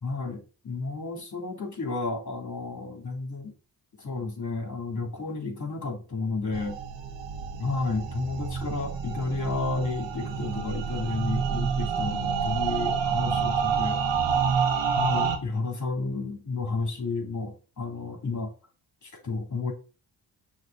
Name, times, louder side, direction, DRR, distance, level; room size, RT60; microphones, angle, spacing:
voice 1, 0.0-3.5 4.0-6.8 7.6-14.0 15.0-18.5 19.0-19.7, left 3 dB, 40° left, 2 dB, 2.7 m, -31 dB
sound 1, 6.5-15.4, right 6 dB, 85° right, 1.2 m, -28 dB
6.4 x 3.3 x 5.4 m, 0.36 s
cardioid pair, 90°, 43 cm